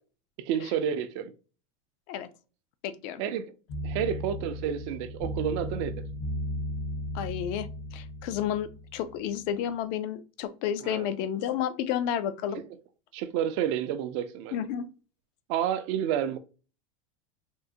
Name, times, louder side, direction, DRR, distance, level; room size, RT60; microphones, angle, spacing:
voice 1, 0.4-1.3 3.2-3.5 3.8-6.0 10.8-11.1 12.5-12.6 13.1-14.6 15.5-16.4, right 9 dB, 60° right, 0.5 m, -30 dB
voice 2, 2.8-3.2 7.1-12.6 14.5-14.9, left 10 dB, 55° left, 0.5 m, -31 dB
sound 1, 3.7-9.3, equal, 70° left, 1.5 m, -36 dB
3.6 x 2.1 x 2.6 m
supercardioid pair, 135°, 17 cm